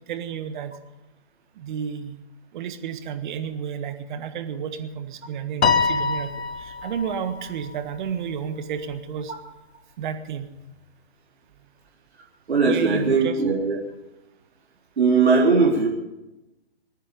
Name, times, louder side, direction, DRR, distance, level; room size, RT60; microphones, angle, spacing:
voice 1, 0.1-0.7 1.6-2.2 2.5-9.3 10.0-10.5 12.6-13.3, right 7 dB, 45° right, 9 dB, 1.6 m, -31 dB
Piano, 5.6-8.1, left 5 dB, 80° left, 1.3 m, -25 dB
voice 2, 12.5-13.8 15.0-15.9, right 4 dB, 80° right, -2 dB, 4.1 m, -19 dB
24.5 x 10.0 x 5.2 m, 0.97 s
hypercardioid pair, 135°, 32 cm